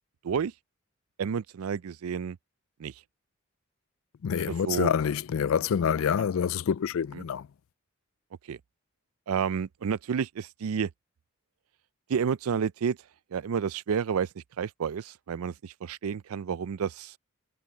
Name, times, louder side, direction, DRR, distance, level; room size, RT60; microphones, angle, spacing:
voice 1, 1.2-2.4 2.8-3.0 4.6-4.9 7.1-7.2 8.4-8.6 9.3-10.9 12.1-13.0 13.3-17.2, right 7 dB, 90° right, 0.4 m, -30 dB
voice 2, 4.2-7.5, left 7 dB, 75° left, 0.4 m, -27 dB
head